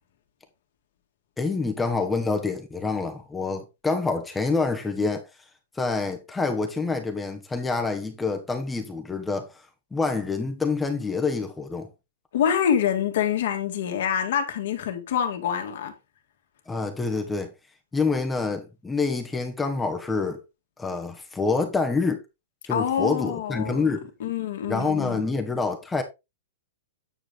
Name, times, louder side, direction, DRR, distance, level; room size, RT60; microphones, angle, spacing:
voice 1, 1.4-5.3 5.7-9.6 9.9-11.9 16.7-17.5 17.9-20.4 20.8-22.2 22.7-24.1 24.7-26.0, left 4 dB, 10° left, 1.2 m, -27 dB
voice 2, 12.3-15.9 22.7-23.9 24.2-25.3, left 8 dB, 65° left, 2.2 m, -26 dB
9.2 x 4.9 x 3.8 m
hypercardioid pair, 115°, 0 cm